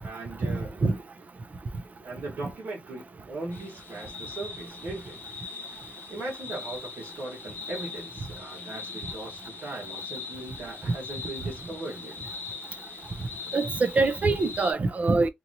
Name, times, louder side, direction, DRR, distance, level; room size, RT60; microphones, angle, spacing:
voice 1, 0.0-0.8 2.0-5.2 5.7-12.3, right 2 dB, 80° right, 1.5 m, -39 dB
sound 1, 3.5-14.7, left 5 dB, 70° left, 0.7 m, -41 dB
voice 2, 13.5-15.3, right 3 dB, 45° right, 0.5 m, -24 dB
2.9 x 2.5 x 2.7 m
wide cardioid pair, 130°, 4 cm